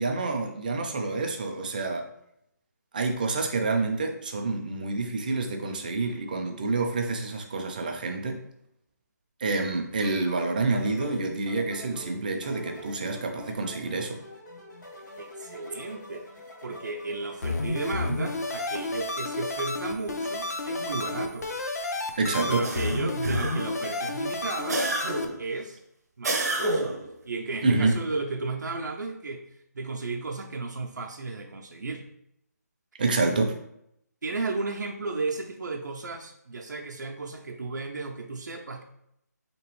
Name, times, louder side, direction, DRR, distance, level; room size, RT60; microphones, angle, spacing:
voice 1, 0.0-2.1 2.9-8.4 9.4-14.2 22.2-22.7 27.6-28.0 33.0-33.6, right 3 dB, 30° right, 3 dB, 0.4 m, -28 dB
sound 1, 10.0-17.7, equal, 80° left, 1.1 m, -45 dB
voice 2, 15.2-16.3 16.6-21.5 22.5-24.8 25.4-25.8 26.2-26.9 27.3-29.4 29.7-32.0 34.2-38.8, right 3 dB, 85° right, 1 dB, 0.5 m, -34 dB
sound 2, 17.4-25.3, left 2 dB, 60° left, 0.5 m, -31 dB
sound 3, 22.6-23.8 24.7-25.4 26.2-27.1, right 2 dB, 60° right, 0.8 m, -29 dB
3.3 x 3.0 x 3.0 m, 0.76 s
hypercardioid pair, 170°, 10 cm